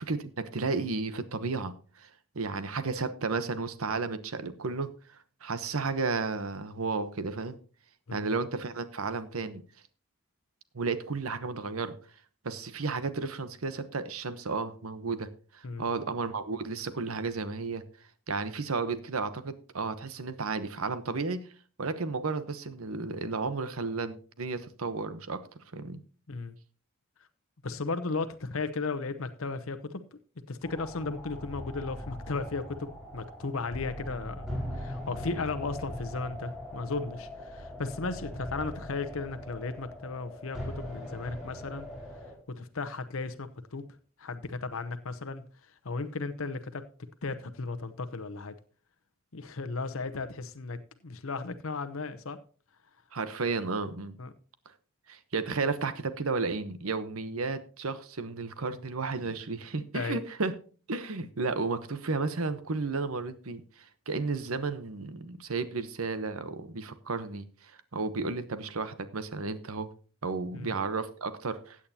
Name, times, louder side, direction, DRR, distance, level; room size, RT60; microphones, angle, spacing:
voice 1, 0.0-2.1 2.3-7.6 8.1-9.6 10.7-11.9 12.4-17.8 18.3-21.5 21.8-25.4 25.7-26.0 53.1-54.2 55.1-60.5 60.9-69.9 70.2-71.8, right 4 dB, 80° right, 1.0 m, -33 dB
voice 2, 27.6-30.2 30.5-41.9 42.5-43.9 44.2-46.8 47.2-48.5 49.3-52.4 54.2-54.3 59.8-60.2 70.5-70.7, left 3 dB, 70° left, 0.8 m, -35 dB
sound 1, 30.6-42.3, equal, ahead, 4.9 m, -41 dB
15.5 x 8.6 x 2.8 m
head